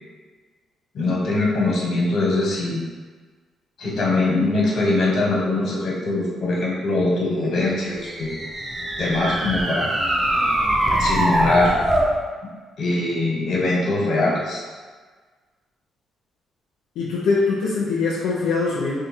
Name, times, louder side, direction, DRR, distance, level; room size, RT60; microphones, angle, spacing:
voice 1, 0.9-2.8 3.8-8.3 9.0-9.9 10.9-11.8 12.8-14.6, left 2 dB, 60° left, -3 dB, 1.1 m, -22 dB
sound 1, 7.8-12.2, right 1 dB, 20° right, 0.5 m, -22 dB
voice 2, 17.0-19.0, left 4 dB, 90° left, -5 dB, 0.6 m, -22 dB
2.7 x 2.6 x 4.3 m, 1.4 s
cardioid pair, 90°, 0 cm